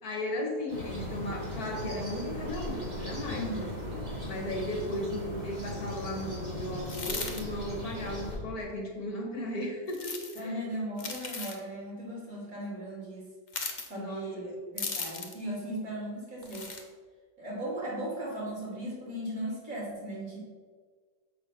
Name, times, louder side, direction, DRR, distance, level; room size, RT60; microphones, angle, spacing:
voice 1, 0.0-3.7 4.3-10.6 14.0-14.6, left 1 dB, 65° left, 1 dB, 2.0 m, -36 dB
sound 1, 0.7-8.4, equal, 30° right, 2.9 m, -38 dB
voice 2, 3.3-3.8 10.3-13.3 13.9-16.7 17.4-20.4, right 1 dB, 55° right, -5 dB, 3.5 m, -37 dB
sound 2, 6.8-7.4 9.9-10.4 11.0-11.6 13.5-13.9 14.8-15.4 16.4-16.8, left 4 dB, 35° left, 0.9 m, -37 dB
7.1 x 6.3 x 5.9 m, 1.6 s
omnidirectional pair, 1.8 m